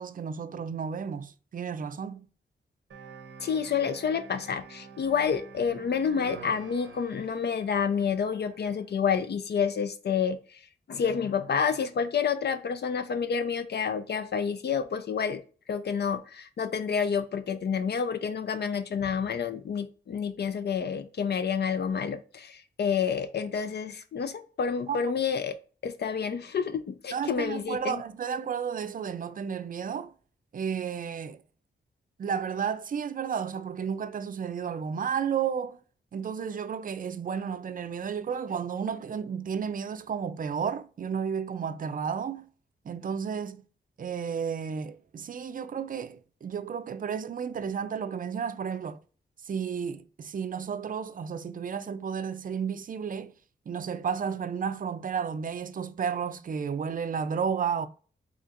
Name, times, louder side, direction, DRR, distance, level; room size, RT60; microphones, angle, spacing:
voice 1, 0.0-2.3 24.9-25.0 27.1-30.1 30.5-31.4 32.2-35.8 36.1-42.5 42.8-43.6 44.0-49.0 49.4-53.3 53.7-57.9, right 7 dB, 45° right, 0.4 m, -32 dB
sound 1, 2.9-8.8, right 5 dB, 80° right, 0.7 m, -48 dB
voice 2, 3.4-10.6 10.9-15.4 15.7-25.6 25.8-28.0, left 6 dB, 60° left, 0.4 m, -29 dB
4.1 x 2.9 x 2.5 m
cardioid pair, 65°, 20 cm